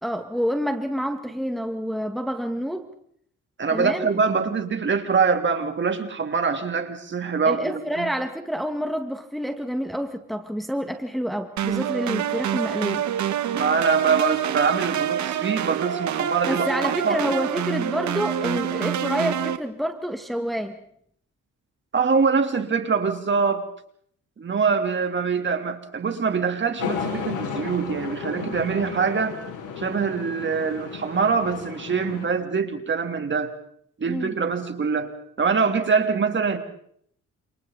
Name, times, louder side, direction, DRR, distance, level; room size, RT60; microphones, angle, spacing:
voice 1, 0.0-2.9 3.7-4.1 7.5-13.1 16.5-20.8 34.1-34.4, equal, ahead, 6 dB, 1.9 m, -28 dB
voice 2, 3.6-8.1 13.5-17.2 21.9-23.7 24.4-29.4 29.8-33.5 34.0-36.6, right 5 dB, 40° right, 6 dB, 3.4 m, -24 dB
sound 1, 11.6-19.6, right 10 dB, 70° right, 1.7 m, -27 dB
sound 2, 26.8-32.3, left 6 dB, 90° left, 7.8 m, -33 dB
29.5 x 28.0 x 4.1 m, 0.67 s
cardioid pair, 90°, 30 cm